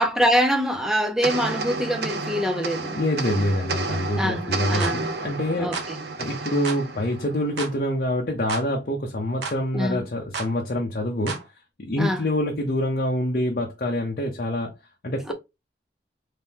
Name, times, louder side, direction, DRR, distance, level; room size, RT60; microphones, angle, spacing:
voice 1, 0.0-3.0 4.2-5.1 5.6-6.0 9.7-10.0 12.0-12.2 15.2-15.3, equal, 5° right, 0.5 m, -24 dB
sound 1, 1.2-7.9, right 3 dB, 65° right, 0.6 m, -31 dB
voice 2, 2.9-5.8 6.2-11.4 11.8-14.7 15.0-15.3, left 1 dB, 50° left, 0.7 m, -26 dB
sound 2, 4.8-5.0 5.7-5.9 6.6-6.8 7.6-7.8 8.5-8.7 9.4-9.6 10.3-10.5 11.3-11.5, right 5 dB, 80° right, 0.9 m, -32 dB
3.2 x 2.9 x 3.5 m
head